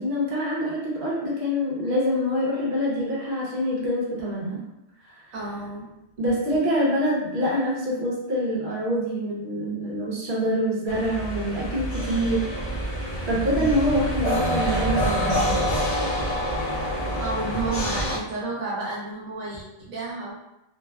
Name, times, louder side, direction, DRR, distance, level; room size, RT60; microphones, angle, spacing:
voice 1, 0.0-4.6 5.0-5.2 6.2-12.5 13.3-15.6, equal, 55° right, -5 dB, 1.1 m, -25 dB
voice 2, 5.3-5.8 13.5-13.7 17.2-20.3, right 3 dB, 85° right, -5 dB, 1.2 m, -31 dB
sound 1, 10.9-18.2, equal, 40° left, 0.6 m, -26 dB
3.0 x 2.3 x 2.2 m, 0.89 s
omnidirectional pair, 1.4 m